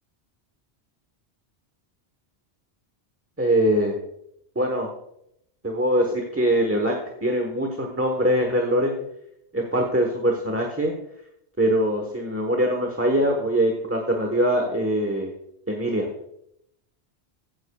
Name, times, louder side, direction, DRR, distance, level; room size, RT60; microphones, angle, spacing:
voice 1, 3.4-3.9 4.5-4.9 5.6-8.9 9.5-10.9 11.6-15.3 15.7-16.1, right 1 dB, 10° right, 1 dB, 1.1 m, -23 dB
15.5 x 9.6 x 2.3 m, 0.77 s
omnidirectional pair, 1.1 m